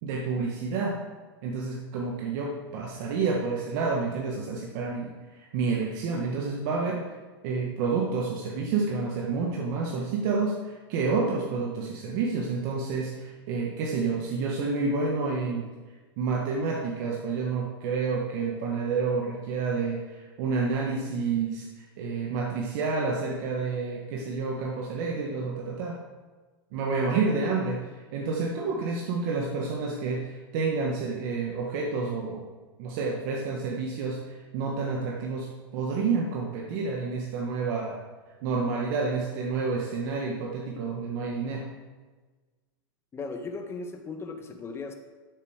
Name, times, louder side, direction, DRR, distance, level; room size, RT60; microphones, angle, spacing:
voice 1, 0.0-1.0 1.4-7.1 7.4-15.6 16.2-21.7 22.0-26.0 26.7-32.5 32.8-38.0 38.4-41.7, right 4 dB, 55° right, -1 dB, 1.9 m, -29 dB
voice 2, 43.1-44.9, left 3 dB, 20° left, 5 dB, 1.6 m, -37 dB
12.0 x 7.3 x 6.7 m, 1.3 s
hypercardioid pair, 130°, 13 cm